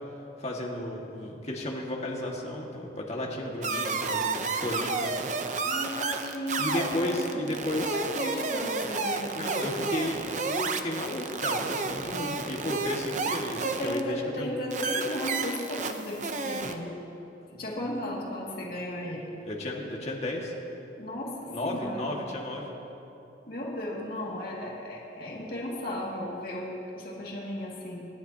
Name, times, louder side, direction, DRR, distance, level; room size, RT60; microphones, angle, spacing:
voice 1, 0.4-5.1 6.6-8.0 9.3-14.5 19.4-20.5 21.5-22.8, left 1 dB, 35° left, -2 dB, 1.9 m, -33 dB
sound 1, 3.6-14.0 14.7-16.7, right 4 dB, 40° right, 0.7 m, -31 dB
voice 2, 5.6-7.4 7.9-9.7 13.6-17.0 17.5-19.4 21.0-22.2 23.5-28.1, left 1 dB, 50° left, -4 dB, 2.3 m, -35 dB
27.5 x 11.5 x 2.9 m, 2.9 s
head